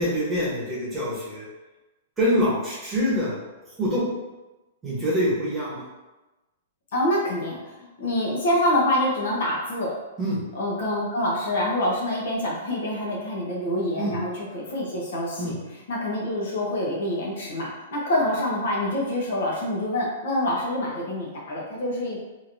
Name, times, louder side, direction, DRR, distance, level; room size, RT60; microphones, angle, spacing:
voice 1, 0.0-1.4 2.2-3.4 3.8-4.0 4.8-5.8 10.2-10.4 14.0-14.1 15.4-15.6, equal, 10° right, -8 dB, 1.0 m, -25 dB
voice 2, 6.9-9.9 10.5-15.5 15.9-22.2, left 1 dB, 65° left, -3 dB, 0.9 m, -26 dB
3.1 x 2.7 x 2.6 m, 1.1 s
hypercardioid pair, 160°, 0 cm